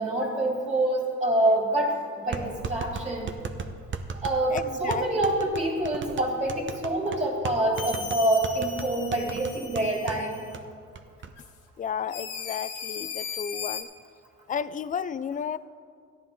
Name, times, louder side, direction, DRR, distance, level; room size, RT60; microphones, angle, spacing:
voice 1, 0.0-3.4 4.2-10.4, right 1 dB, 15° right, -3 dB, 2.6 m, -26 dB
sound 1, 1.4-1.5 2.3-10.2 10.5-10.6 11.0-11.3, right 5 dB, 40° right, 0.8 m, -36 dB
voice 2, 4.5-5.0 11.8-13.9 14.5-15.6, left 7 dB, 30° left, 17 dB, 0.3 m, -32 dB
sound 2, 7.8-10.6 11.4-11.5 12.1-13.8, left 7 dB, 85° left, 1.2 m, -38 dB
14.5 x 11.0 x 3.7 m, 2.2 s
cardioid pair, 90°, 30 cm